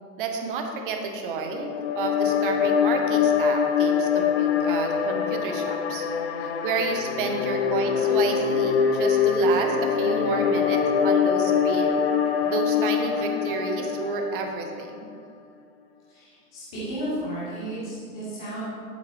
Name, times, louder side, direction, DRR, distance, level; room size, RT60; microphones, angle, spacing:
voice 1, 0.2-6.0 6.4-12.0 12.4-14.9, right 4 dB, 35° right, 4 dB, 1.1 m, -30 dB
sound 1, 1.4-14.8, left 7 dB, 40° left, 0.7 m, -24 dB
voice 2, 16.1-18.6, right 1 dB, 5° left, -10 dB, 0.4 m, -33 dB
11.5 x 8.1 x 3.2 m, 2.2 s
figure-of-eight pair, 120°, 48 cm